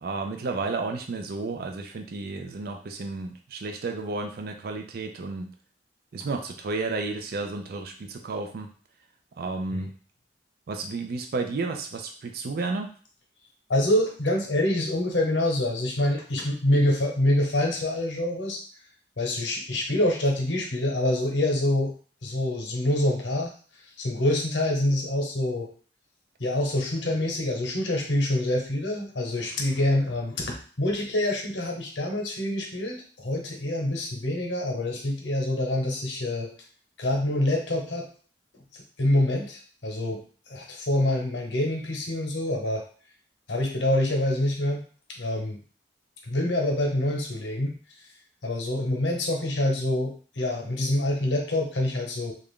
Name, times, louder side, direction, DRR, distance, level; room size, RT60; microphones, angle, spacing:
voice 1, 0.0-5.5 6.1-8.7 9.4-9.9 10.7-12.9, right 3 dB, 55° right, 5 dB, 0.4 m, -32 dB
voice 2, 13.7-18.6 19.2-21.9 22.2-23.5 24.0-25.7 26.4-36.5 37.0-38.1 38.5-42.8 43.5-44.8 45.2-45.6 46.3-47.7 48.4-52.3, left 1 dB, 85° left, 1 dB, 0.9 m, -26 dB
3.3 x 2.5 x 3.6 m, 0.42 s
head